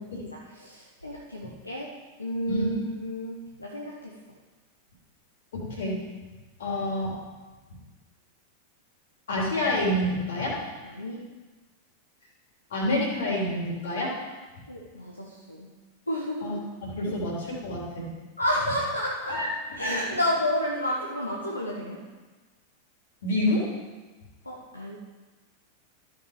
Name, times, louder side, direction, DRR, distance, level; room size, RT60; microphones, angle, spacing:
voice 1, 0.0-4.2 10.8-11.3 14.7-15.7 16.1-16.6 17.1-17.2 18.4-19.4 19.7-22.0 24.4-25.0, equal, 85° left, -3 dB, 1.3 m, -31 dB
voice 2, 5.5-6.0 6.6-7.1 9.3-10.6 12.7-14.1 16.4-18.1 19.3-19.5 23.2-23.6, left 1 dB, 60° left, -3 dB, 3.3 m, -28 dB
14.0 x 5.7 x 5.0 m, 1.3 s
figure-of-eight pair, 90°, 0 cm